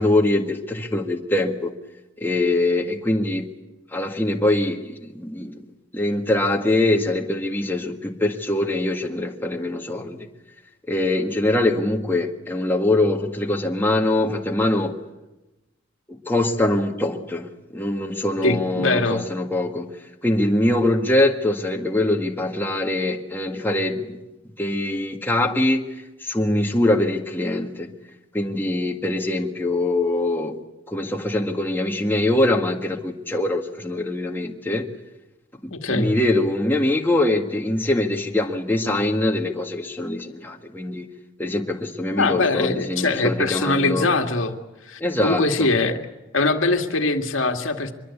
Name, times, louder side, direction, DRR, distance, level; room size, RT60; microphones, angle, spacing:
voice 1, 0.0-1.7 2.2-3.5 3.9-5.5 5.9-10.3 10.9-14.9 16.1-19.9 20.2-24.2 24.6-25.8 26.2-27.9 28.3-30.6 30.9-34.9 35.6-41.1 41.4-44.1 45.0-45.7, left 1 dB, 10° left, 1.8 m, -23 dB
voice 2, 18.4-19.2 35.7-36.1 42.2-44.5 44.9-46.0 46.3-47.9, left 3 dB, 85° left, 2.1 m, -22 dB
24.5 x 22.5 x 8.5 m
head